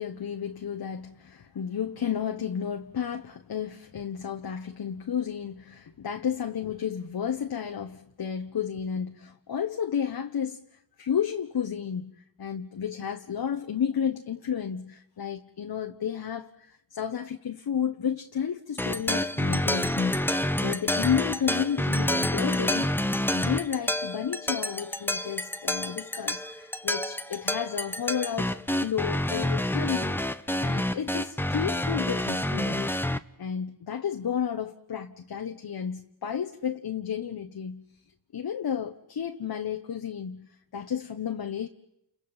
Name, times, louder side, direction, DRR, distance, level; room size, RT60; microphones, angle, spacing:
voice 1, 0.0-10.6 11.0-28.5 28.8-30.2 30.6-33.0 33.4-37.8 38.3-41.7, left 8 dB, 50° left, 1.4 m, -32 dB
sound 1, 18.8-33.2, left 1 dB, 5° left, 1.1 m, -28 dB
29.5 x 29.0 x 5.8 m
supercardioid pair, 50°, 47 cm